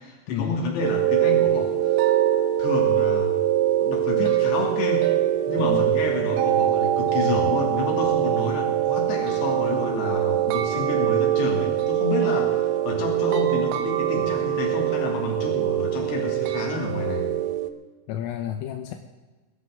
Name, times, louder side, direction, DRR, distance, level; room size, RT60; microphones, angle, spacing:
voice 1, 0.0-2.1 2.6-3.3 3.8-5.1 5.5-17.3, left 3 dB, 60° left, 0 dB, 4.5 m, -29 dB
sound 1, 0.8-17.7, right 12 dB, 85° right, 3.3 m, -23 dB
voice 2, 5.6-5.9 18.1-19.0, left 10 dB, 85° left, 5 dB, 3.5 m, -30 dB
21.0 x 14.0 x 3.7 m, 1.2 s
omnidirectional pair, 5.9 m